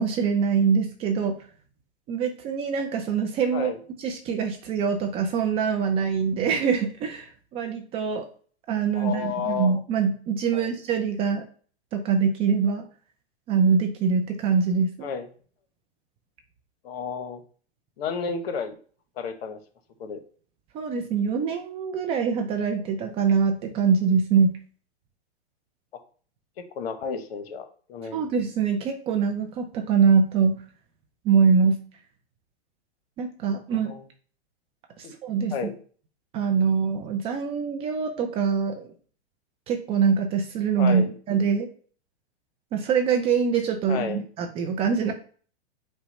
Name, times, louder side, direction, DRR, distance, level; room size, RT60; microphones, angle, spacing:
voice 1, 0.0-1.4 2.1-3.7 4.0-8.3 8.7-11.4 11.9-12.8 13.5-15.1 20.7-24.6 28.1-30.6 31.3-31.8 33.2-33.9 35.0-35.6 36.3-38.9 39.7-41.7 42.7-45.1, right 6 dB, 20° right, 5 dB, 0.4 m, -24 dB
voice 2, 8.9-9.8 10.5-10.7 15.0-15.3 16.8-17.4 18.0-18.8 19.2-19.6 20.0-20.2 26.6-28.3 33.8-34.0 35.0-35.1 35.5-35.7 40.8-41.1 43.9-44.2, left 6 dB, 65° left, 8 dB, 1.0 m, -32 dB
5.6 x 2.2 x 4.1 m, 0.43 s
hypercardioid pair, 130°, 33 cm